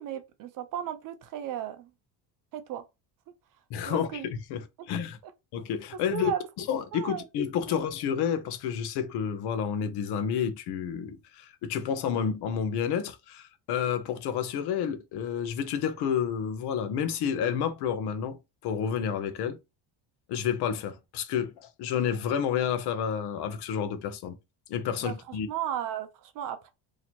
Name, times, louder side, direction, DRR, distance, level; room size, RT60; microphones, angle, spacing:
voice 1, 0.0-1.9 2.5-2.8 3.9-4.3 4.8-4.9 6.1-6.4 6.9-7.3 7.7-7.8 25.0-26.7, right 10 dB, 45° right, 0.6 m, -35 dB
voice 2, 3.7-5.2 5.5-6.3 6.7-18.4 18.6-19.6 20.3-24.3 24.7-25.5, left 8 dB, 60° left, 0.8 m, -30 dB
2.9 x 2.9 x 4.3 m
cardioid pair, 170°, 46 cm